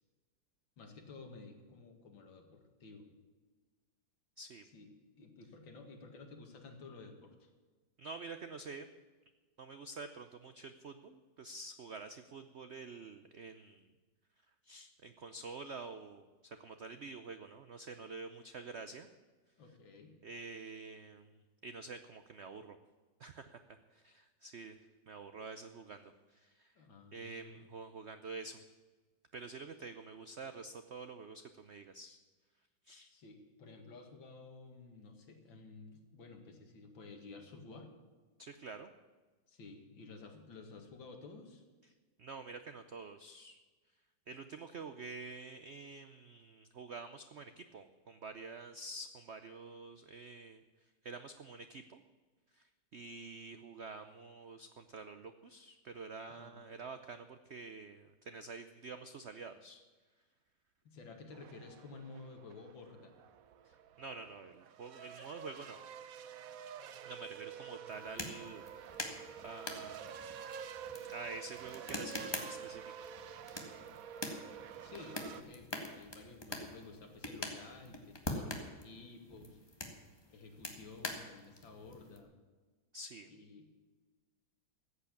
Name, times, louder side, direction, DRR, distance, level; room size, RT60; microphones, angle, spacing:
voice 1, 0.8-3.1 4.7-4.9 5.2-7.5 19.6-20.1 26.8-27.7 33.1-37.9 39.5-41.6 56.3-56.7 60.8-63.1 74.3-79.6 80.3-82.3 83.3-83.7, left 3 dB, 80° left, 4 dB, 2.6 m, -53 dB
voice 2, 8.0-8.9 9.6-13.9 14.6-19.1 20.2-22.8 23.2-24.8 25.1-26.7 27.1-28.6 29.3-32.2 32.8-33.1 38.4-38.9 42.2-43.6 44.3-50.6 51.0-52.0 52.5-59.8 63.6-65.8 67.0-68.7 69.0-70.2 71.1-72.9 82.9-83.3, right 4 dB, 85° right, 9 dB, 0.5 m, -48 dB
sound 1, 61.3-75.4, right 8 dB, 60° right, 0.9 m, -49 dB
sound 2, 67.9-82.2, left 1 dB, 15° left, 1.6 m, -45 dB
14.5 x 8.4 x 8.6 m, 1.4 s
omnidirectional pair, 2.1 m